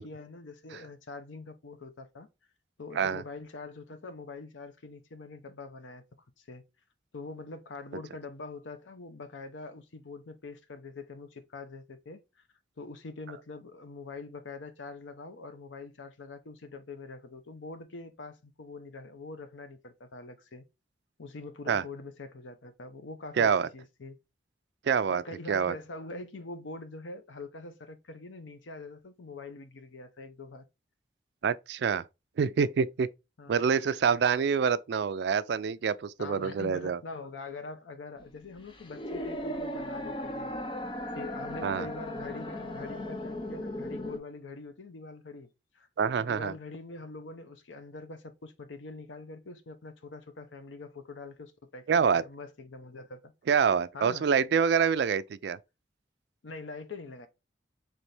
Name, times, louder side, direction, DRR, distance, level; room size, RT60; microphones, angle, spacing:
voice 1, 0.0-2.3 2.8-6.0 6.4-6.6 7.1-12.2 12.8-20.6 21.2-24.2 25.1-30.7 33.4-33.7 36.2-40.8 41.1-45.5 45.7-53.3 53.9-54.3 56.4-57.3, left 3 dB, 85° left, 0.7 m, -44 dB
voice 2, 23.4-23.7 24.9-25.2 25.5-25.7 31.4-32.0 32.4-33.1 33.5-37.0 41.6-41.9 46.0-46.5 51.9-52.2 53.5-55.6, right 6 dB, 60° right, 0.3 m, -26 dB
sound 1, 38.2-44.2, left 1 dB, 25° left, 0.6 m, -37 dB
4.1 x 3.4 x 3.2 m
head